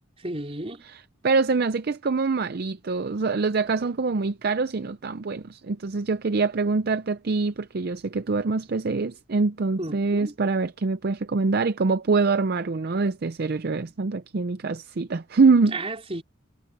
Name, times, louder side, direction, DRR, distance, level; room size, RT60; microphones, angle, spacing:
voice 1, 0.2-0.8 9.8-10.3 15.7-16.2, right 2 dB, 30° right, 3.7 m, -33 dB
voice 2, 1.2-15.8, right 4 dB, 50° right, 0.5 m, -24 dB
head